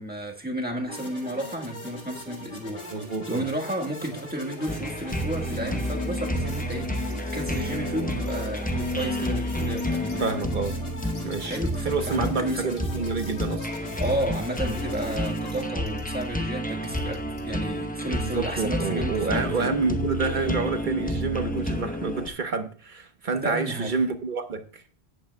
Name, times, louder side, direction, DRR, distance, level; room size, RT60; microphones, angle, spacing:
voice 1, 0.0-2.8 3.3-10.2 11.2-12.7 14.0-19.7 23.3-23.9, right 1 dB, 10° right, 1.4 m, -32 dB
sound 1, 0.8-15.6, left 1 dB, 60° left, 2.3 m, -41 dB
voice 2, 2.9-3.5 10.2-10.8 11.2-11.6 11.8-13.7 18.0-24.8, right 4 dB, 50° right, 1.1 m, -28 dB
sound 2, 4.7-22.3, equal, 10° left, 0.8 m, -30 dB
sound 3, 6.5-6.8 7.1-7.8 8.3-8.4 8.9-9.1 9.5-10.2 10.7-10.8 11.0-12.3 12.8-13.7 14.0-14.1 14.9-15.0 15.5-15.6 15.9-16.2 16.8-17.4, left 2 dB, 80° left, 3.1 m, -49 dB
18.0 x 8.6 x 2.3 m
omnidirectional pair, 1.1 m